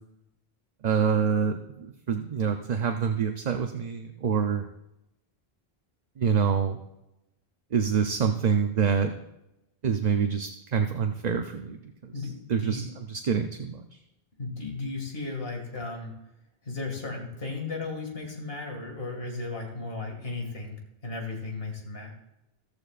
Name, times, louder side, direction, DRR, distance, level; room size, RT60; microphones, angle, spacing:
voice 1, 0.8-4.6 6.2-6.8 7.7-9.1 9.8-12.1 12.5-12.8 13.1-13.9, right 6 dB, 45° right, 5 dB, 0.7 m, -26 dB
voice 2, 12.1-12.9 14.4-16.1 16.6-20.8 21.0-22.1, left 3 dB, 70° left, 2 dB, 2.5 m, -35 dB
15.0 x 14.0 x 2.5 m, 0.90 s
omnidirectional pair, 1.0 m